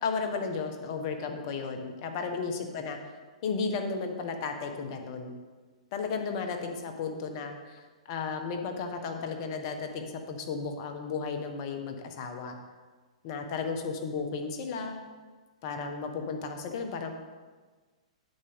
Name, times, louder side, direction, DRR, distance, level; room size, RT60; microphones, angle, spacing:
voice 1, 0.0-3.0 3.4-5.3 5.9-12.6 13.2-15.0 15.6-17.1, left 5 dB, 45° left, 5 dB, 1.4 m, -34 dB
9.4 x 8.3 x 3.7 m, 1.4 s
hypercardioid pair, 120°, 4 cm